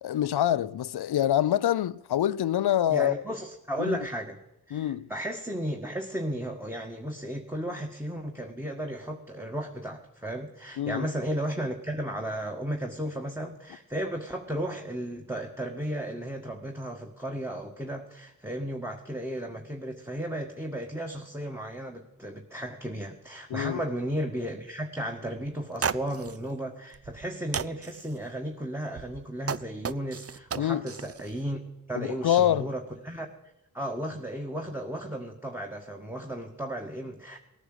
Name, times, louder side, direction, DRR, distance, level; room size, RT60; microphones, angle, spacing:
voice 1, 0.0-3.1 3.8-4.0 4.7-5.1 10.8-11.1 23.5-23.8 30.6-30.8 32.0-32.7, left 11 dB, 80° left, 0.6 m, -26 dB
voice 2, 2.9-4.4 4.7-31.6 31.9-33.3 33.7-37.4, right 1 dB, 5° right, 1.8 m, -34 dB
sound 1, 25.5-25.6 25.8-26.4 26.9-27.3 27.5-28.1 29.0-31.3, right 6 dB, 40° right, 0.6 m, -33 dB
17.5 x 9.9 x 8.0 m
cardioid pair, 40°, 39 cm